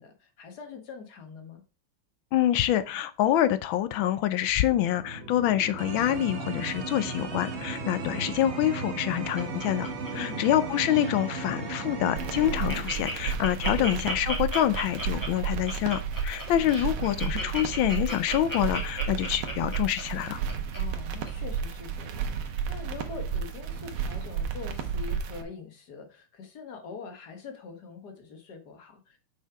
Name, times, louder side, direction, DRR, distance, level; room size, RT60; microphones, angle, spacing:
voice 1, 0.0-1.6 10.1-10.5 13.7-14.1 20.7-29.2, left 5 dB, 50° left, 5 dB, 1.9 m, -43 dB
voice 2, 2.3-20.4, left 12 dB, 75° left, 14 dB, 1.3 m, -26 dB
sound 1, 4.6-12.8, right 3 dB, 40° right, 1.1 m, -35 dB
Laughter, 8.7-10.5 10.8-11.1 11.6-11.7 12.0-12.1 12.4-20.8 21.3-21.4, equal, 10° left, 1.9 m, -35 dB
sound 2, 12.2-25.4, right 6 dB, 80° right, 1.8 m, -32 dB
6.3 x 5.7 x 4.6 m, 0.34 s
omnidirectional pair, 2.3 m